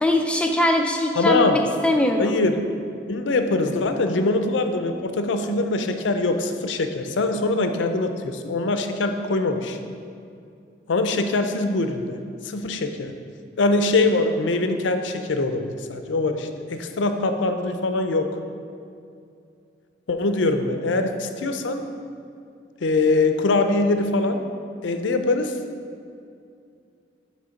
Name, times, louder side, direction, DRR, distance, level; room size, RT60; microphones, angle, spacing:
voice 1, 0.0-2.4, left 1 dB, 5° left, 2 dB, 0.4 m, -21 dB
voice 2, 1.2-1.6 2.2-2.6 3.1-9.8 10.9-12.2 12.4-13.1 13.6-18.3 20.1-21.9 22.8-24.4 24.8-25.5, left 2 dB, 85° left, 7 dB, 0.5 m, -23 dB
7.8 x 3.2 x 5.7 m, 2.4 s
head